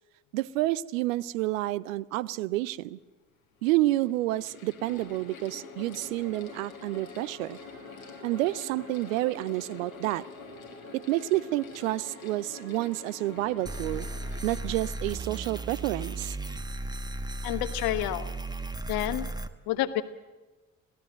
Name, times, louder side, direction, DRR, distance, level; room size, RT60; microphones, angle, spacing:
voice 1, 0.3-3.0 3.6-7.6 8.2-10.2 10.9-14.1 14.4-16.4, right 17 dB, 70° right, 20 dB, 0.6 m, -29 dB
Mechanical fan, 2.6-2.7 3.5-16.2, left 6 dB, 85° left, 1.4 m, -47 dB
sound 1, 4.8-16.1, right 3 dB, 45° right, 7.1 m, -51 dB
sound 2, 13.7-19.5, right 2 dB, 10° right, 1.1 m, -35 dB
voice 2, 17.4-18.3 18.9-19.3 19.7-20.0, left 14 dB, 60° left, 12 dB, 1.2 m, -29 dB
26.0 x 17.0 x 7.5 m, 1.2 s
figure-of-eight pair, 45°, 40 cm